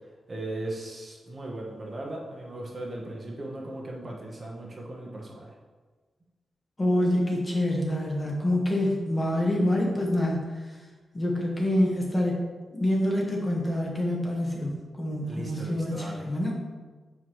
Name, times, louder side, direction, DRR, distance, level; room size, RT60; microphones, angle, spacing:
voice 1, 0.3-5.5 15.2-16.3, right 1 dB, 35° right, -2 dB, 0.9 m, -37 dB
voice 2, 6.8-10.5 11.1-12.4 12.7-16.5, left 1 dB, 20° left, -2 dB, 1.2 m, -26 dB
7.0 x 4.7 x 3.0 m, 1.4 s
wide cardioid pair, 110°, 0 cm